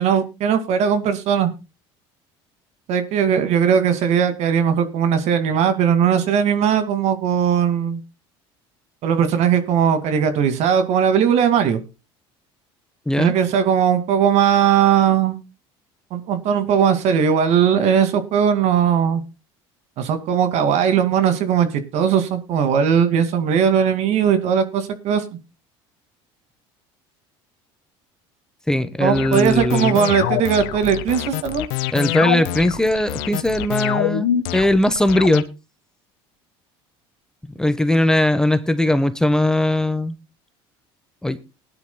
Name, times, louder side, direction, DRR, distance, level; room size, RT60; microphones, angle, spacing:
voice 1, 0.0-1.5 2.9-8.0 9.0-11.8 13.2-15.4 16.1-19.2 20.0-25.2 29.0-31.6, right 8 dB, 60° right, 2.4 m, -18 dB
voice 2, 28.7-30.0 31.9-35.4 37.6-40.1 41.2-41.4, left 1 dB, 5° left, 1.1 m, -19 dB
sound 1, 29.1-35.4, left 13 dB, 75° left, 1.4 m, -25 dB
20.0 x 10.5 x 2.3 m
supercardioid pair, 100°, 12 cm